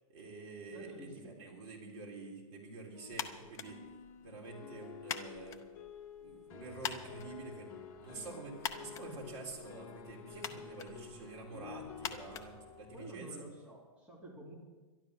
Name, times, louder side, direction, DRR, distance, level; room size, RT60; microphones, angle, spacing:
voice 1, 0.0-3.8 4.2-5.6 6.2-13.5, right 3 dB, 55° right, -1 dB, 3.8 m, -48 dB
voice 2, 0.7-1.4 12.9-14.5, right 1 dB, 10° right, -6 dB, 2.9 m, -50 dB
sound 1, 2.9-13.0, left 8 dB, 35° left, 1.5 m, -51 dB
sound 2, 3.1-13.3, left 8 dB, 15° left, 0.7 m, -46 dB
12.0 x 12.0 x 6.5 m, 1.3 s
hypercardioid pair, 160°, 18 cm